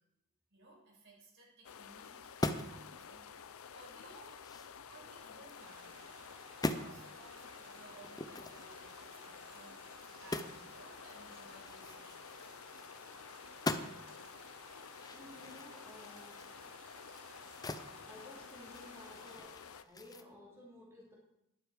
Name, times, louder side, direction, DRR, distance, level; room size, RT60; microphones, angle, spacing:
voice 1, 0.5-4.3 4.9-6.0 6.6-12.7, right 2 dB, 60° right, -3 dB, 5.2 m, -59 dB
sound 1, 1.6-19.8, left 7 dB, 80° left, 0.6 m, -52 dB
sound 2, 2.2-2.9 3.3-3.4 3.9-5.6 6.0-6.2 6.5-6.9 8.0-10.7 10.9-11.0 11.3-13.2 13.4-14.2 14.6-17.9 18.3-20.2, left 2 dB, 20° left, 0.6 m, -42 dB
sound 3, 5.6-19.4, right 4 dB, 75° right, 3.4 m, -58 dB
voice 2, 15.1-16.6 18.0-21.1, left 1 dB, 10° right, -6 dB, 3.4 m, -55 dB
12.5 x 11.0 x 5.0 m, 0.84 s
head